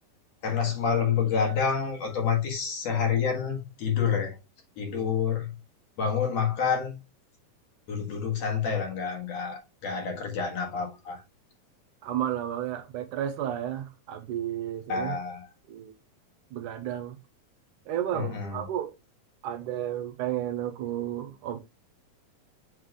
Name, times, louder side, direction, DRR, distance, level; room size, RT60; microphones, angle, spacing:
voice 1, 0.4-4.4 4.8-5.5 6.0-7.0 7.9-11.2 14.9-15.5 18.1-18.6, left 6 dB, 55° left, 2.6 m, -28 dB
voice 2, 12.0-15.2 15.7-15.9 16.5-17.2 17.9-18.9 19.4-21.6, right 11 dB, 75° right, 2.1 m, -32 dB
8.1 x 3.4 x 3.6 m
omnidirectional pair, 4.0 m